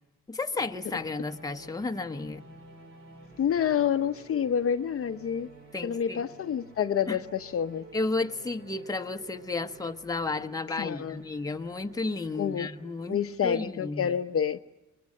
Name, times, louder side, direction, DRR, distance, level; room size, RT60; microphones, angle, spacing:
voice 1, 0.3-2.4 5.7-6.2 7.1-7.2 7.9-13.2 13.4-14.1, left 3 dB, 10° left, 5 dB, 1.1 m, -32 dB
sound 1, 0.6-13.8, right 2 dB, 45° right, 4.8 m, -51 dB
voice 2, 3.4-5.5 5.8-7.8 10.7-11.2 12.4-12.7 13.1-14.6, left 8 dB, 50° left, 8 dB, 0.8 m, -28 dB
24.0 x 21.0 x 7.4 m, 1.1 s
cardioid pair, 90°, 30 cm